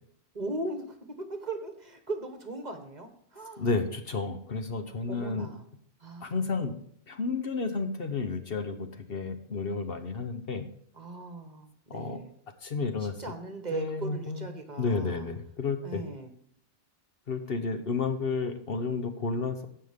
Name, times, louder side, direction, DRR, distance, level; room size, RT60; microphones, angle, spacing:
voice 1, 0.3-3.7 5.1-5.7 6.0-6.7 10.9-12.3 13.0-15.3 15.8-16.3, right 2 dB, 40° right, 6 dB, 1.2 m, -39 dB
voice 2, 3.6-5.5 6.2-6.8 7.1-10.7 11.9-12.2 12.6-13.2 13.7-14.5 14.8-16.0 17.3-19.7, left 4 dB, 55° left, 7 dB, 1.1 m, -31 dB
16.0 x 5.8 x 3.6 m, 0.66 s
omnidirectional pair, 1.2 m